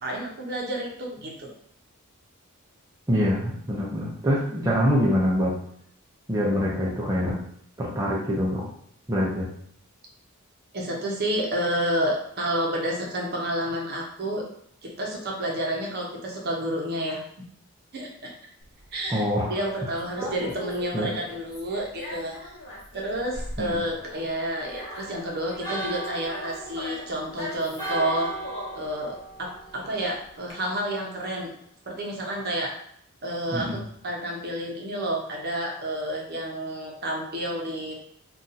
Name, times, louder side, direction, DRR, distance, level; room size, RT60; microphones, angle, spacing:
voice 1, 0.0-1.5 10.7-14.4 14.8-17.5 17.9-18.3 18.9-19.2 19.5-22.5 22.9-28.4 28.8-31.5 31.9-32.7 33.2-37.9, right 1 dB, 45° right, -1 dB, 0.7 m, -30 dB
voice 2, 3.1-5.6 6.3-7.4 7.8-8.7 9.1-9.5 19.1-19.9 20.2-20.5 20.9-21.1 23.6-23.8 33.5-33.8, equal, 15° right, -5 dB, 0.5 m, -25 dB
Conversation, 18.6-30.5, left 1 dB, 50° left, 0.9 m, -40 dB
Church bell, 24.7-30.4, right 2 dB, 25° left, 1.1 m, -38 dB
2.6 x 2.3 x 3.9 m, 0.66 s
head